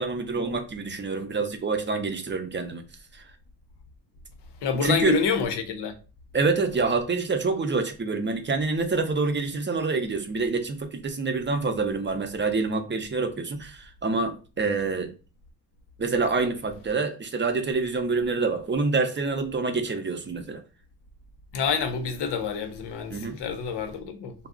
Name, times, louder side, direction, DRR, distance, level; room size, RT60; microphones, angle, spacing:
voice 1, 0.0-2.8 3.1-3.2 4.8-5.2 6.3-15.1 16.0-20.6 23.1-23.4, right 4 dB, 30° right, 0.6 m, -27 dB
voice 2, 4.6-5.9 21.5-24.3, left 5 dB, 85° left, 0.6 m, -27 dB
2.3 x 2.0 x 3.6 m
cardioid pair, 65°, 40 cm